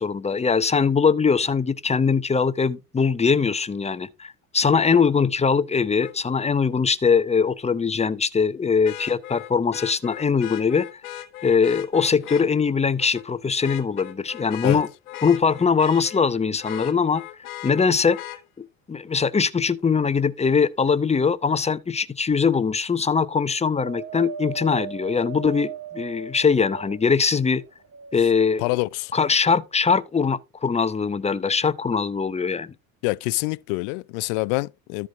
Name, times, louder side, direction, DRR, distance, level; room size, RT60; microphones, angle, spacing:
voice 1, 0.0-11.0 11.4-14.9 15.2-17.2 17.6-18.2 18.9-27.6 28.1-28.6 29.1-32.7, left 5 dB, 15° left, 0.8 m, -21 dB
Vehicle horn car horn honking, 6.0-6.1 8.8-12.5 13.0-13.3 13.6-16.2 16.6-18.4 20.2-20.3, left 13 dB, 85° left, 1.2 m, -38 dB
Wind, 23.7-27.3 27.8-28.9 29.6-29.7, right 9 dB, 30° right, 1.2 m, -37 dB
voice 2, 28.6-29.1 33.0-35.1, left 25 dB, 65° left, 0.5 m, -26 dB
13.0 x 4.7 x 3.6 m
hypercardioid pair, 75°, 42 cm